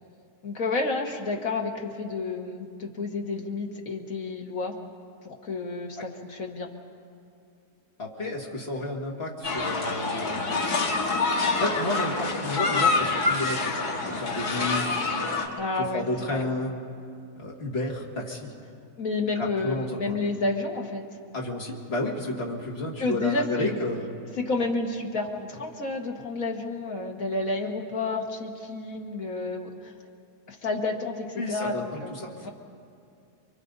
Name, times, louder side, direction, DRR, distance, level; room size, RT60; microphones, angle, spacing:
voice 1, 0.4-4.8 5.2-6.7 15.6-16.5 19.0-21.0 23.0-23.7 24.4-29.9 30.5-32.1 32.4-32.5, left 3 dB, 60° left, 1 dB, 2.1 m, -30 dB
voice 2, 8.0-10.4 11.6-15.0 15.9-16.8 17.4-18.5 19.3-20.2 21.3-24.1 31.4-32.5, left 1 dB, 40° left, -2 dB, 2.6 m, -31 dB
sound 1, 9.4-15.5, left 3 dB, 80° left, 2.3 m, -26 dB
29.0 x 23.5 x 4.1 m, 2.5 s
omnidirectional pair, 1.7 m